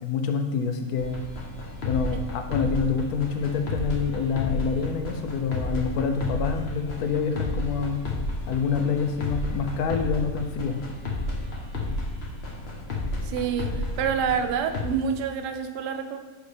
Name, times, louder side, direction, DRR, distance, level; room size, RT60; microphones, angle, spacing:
voice 1, 0.0-1.2 1.8-8.0 8.5-10.8, left 5 dB, 70° left, 6 dB, 1.0 m, -27 dB
sound 1, 1.0-14.8, left 2 dB, 50° left, 0.9 m, -32 dB
voice 2, 13.2-16.2, right 7 dB, 80° right, 6 dB, 1.1 m, -27 dB
6.3 x 5.0 x 3.3 m, 1.3 s
omnidirectional pair, 1.7 m